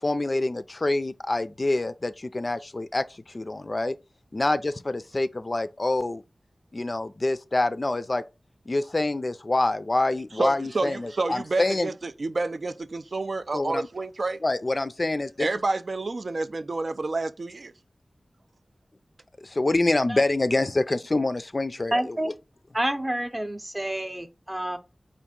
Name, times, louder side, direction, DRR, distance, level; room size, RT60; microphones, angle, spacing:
voice 1, 0.0-4.0 4.3-6.2 6.7-8.2 8.7-11.9 13.5-13.9 14.4-15.5 19.4-22.3, left 2 dB, 40° left, 0.3 m, -26 dB
voice 2, 10.4-14.4 15.4-17.7, right 3 dB, 65° right, 0.3 m, -29 dB
voice 3, 21.9-22.3 22.7-24.8, right 1 dB, 20° right, 0.6 m, -28 dB
4.0 x 2.5 x 3.6 m
wide cardioid pair, 70°, 0 cm